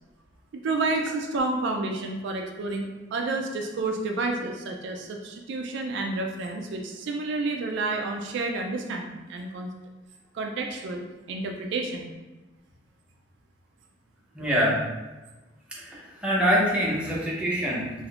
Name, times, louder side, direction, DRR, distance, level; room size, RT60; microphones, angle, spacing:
voice 1, 0.6-9.7 10.3-11.0 11.3-12.1, right 3 dB, 65° right, 3 dB, 0.3 m, -30 dB
voice 2, 14.3-14.8 15.7-17.9, equal, 5° right, -6 dB, 0.7 m, -25 dB
3.5 x 2.6 x 2.3 m, 1.2 s
head